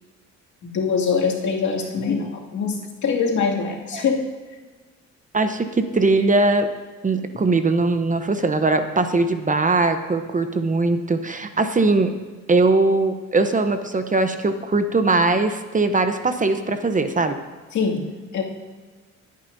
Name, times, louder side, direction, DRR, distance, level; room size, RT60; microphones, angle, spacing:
voice 1, 0.6-4.3 17.7-18.1 18.3-18.4, left 5 dB, 70° left, -2 dB, 2.4 m, -23 dB
voice 2, 5.3-6.7 7.0-12.1 12.5-17.4, right 3 dB, 25° right, 8 dB, 0.8 m, -20 dB
25.5 x 9.3 x 2.7 m, 1.4 s
cardioid pair, 90°, 30 cm